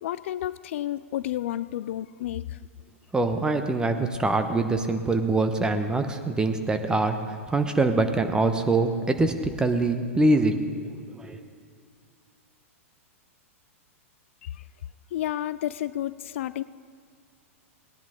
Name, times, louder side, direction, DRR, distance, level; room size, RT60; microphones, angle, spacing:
voice 1, 0.0-2.6 14.4-14.6 15.1-16.6, left 12 dB, 65° left, 16 dB, 0.4 m, -31 dB
voice 2, 3.1-10.6 11.1-11.4, right 2 dB, 10° right, 7 dB, 1.0 m, -24 dB
18.5 x 10.5 x 3.8 m, 2.2 s
hypercardioid pair, 110°, 8 cm